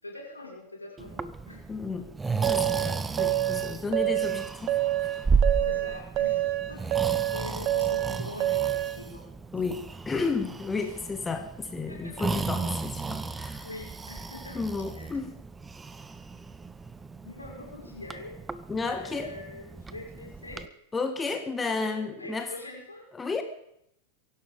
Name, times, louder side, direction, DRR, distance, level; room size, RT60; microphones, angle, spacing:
voice 1, 0.0-1.6 5.6-9.2 10.8-10.9 11.9-12.1 13.6-14.6 14.9-15.1 17.2-18.4 18.8-20.7 21.6-23.1, left 2 dB, 80° left, -2 dB, 5.9 m, -43 dB
Breathing, 1.0-20.7, right 4 dB, 10° right, 0.8 m, -34 dB
voice 2, 1.7-2.1 2.4-5.3 9.5-13.7 14.5-15.4 18.7-19.4 20.9-22.5 23.1-23.4, left 4 dB, 15° left, 7 dB, 1.5 m, -32 dB
sound 1, 2.4-9.0, right 14 dB, 35° right, 1.0 m, -27 dB
23.5 x 11.5 x 5.2 m, 0.77 s
figure-of-eight pair, 90°, 0 cm